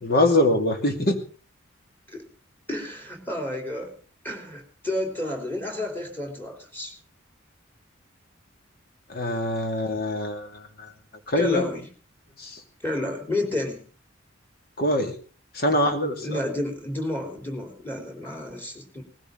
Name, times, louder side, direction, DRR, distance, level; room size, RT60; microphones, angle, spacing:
voice 1, 0.0-1.2 9.1-10.9 11.3-11.7 12.4-12.6 14.8-15.2 15.5-16.4, left 1 dB, 50° left, 5 dB, 2.6 m, -23 dB
voice 2, 2.7-3.9 4.2-6.9 11.3-11.9 12.8-13.8 16.2-19.0, left 1 dB, 10° left, 3 dB, 3.7 m, -31 dB
19.5 x 16.0 x 3.9 m, 0.39 s
head